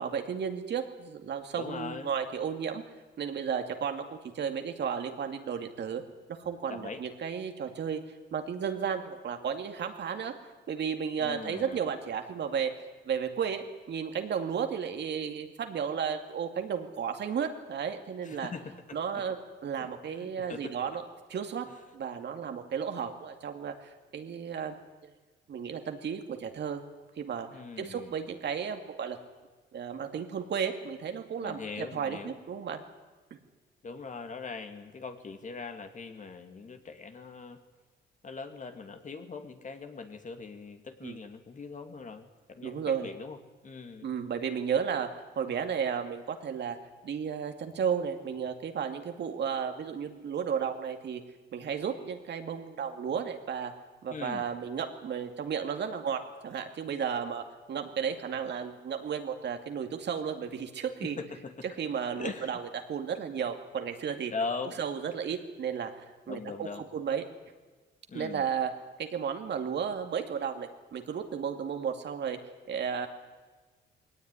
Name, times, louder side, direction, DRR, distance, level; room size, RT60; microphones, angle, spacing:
voice 1, 0.0-2.8 3.2-4.1 4.3-6.0 6.3-10.3 10.7-12.7 13.0-18.5 18.9-21.0 21.3-21.7 21.9-25.1 25.5-26.8 27.2-29.2 29.7-32.8 41.0-41.2 42.6-43.1 44.0-45.1 45.4-46.8 47.0-51.2 51.5-53.7 54.0-61.2 61.6-64.3 64.8-67.2 68.1-68.7 69.0-72.4 72.7-73.1, right 7 dB, 60° right, 5 dB, 2.5 m, -33 dB
voice 2, 1.6-2.1 6.7-7.0 11.2-11.9 18.2-19.0 19.8-20.7 21.7-21.8 27.5-28.1 31.4-32.3 33.8-37.6 38.2-43.4 43.6-44.1 54.1-54.5 61.0-61.8 62.2-62.6 64.3-64.8 66.3-66.8 68.1-68.5, left 4 dB, 40° left, 6 dB, 2.5 m, -41 dB
21.0 x 18.0 x 9.9 m, 1.3 s
cardioid pair, 90°, 20 cm